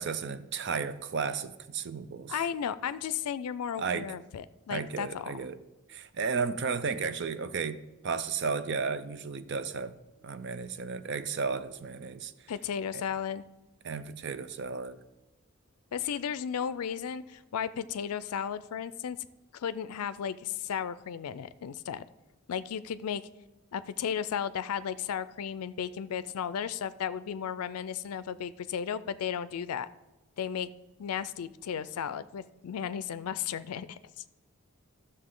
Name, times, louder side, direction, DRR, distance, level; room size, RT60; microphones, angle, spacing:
voice 1, 0.0-2.4 3.8-4.1 4.7-5.6 5.9-7.8 8.0-10.0 10.2-12.3 12.9-13.0 13.8-15.0, right 5 dB, 50° right, 0.5 m, -33 dB
voice 2, 2.3-5.5 12.5-13.4 15.9-19.2 19.5-22.0 22.5-23.2 23.7-29.9 30.4-30.7 31.0-34.0, left 8 dB, 85° left, 0.4 m, -34 dB
13.0 x 6.5 x 3.8 m
head